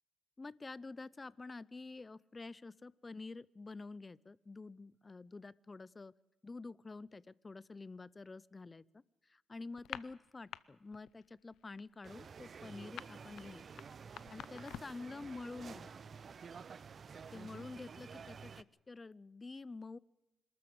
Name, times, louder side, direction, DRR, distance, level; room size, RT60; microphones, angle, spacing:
voice 1, 0.4-6.1 6.4-13.6 14.3-15.9 17.3-20.0, left 3 dB, 25° left, 21 dB, 0.6 m, -48 dB
sound 1, 9.7-10.6 10.9-11.2 11.5-15.1, left 11 dB, 90° left, 0.7 m, -48 dB
sound 2, 12.0-18.6, right 6 dB, 50° right, 0.7 m, -51 dB
27.0 x 13.0 x 7.8 m, 1.0 s
cardioid pair, 105°, 0 cm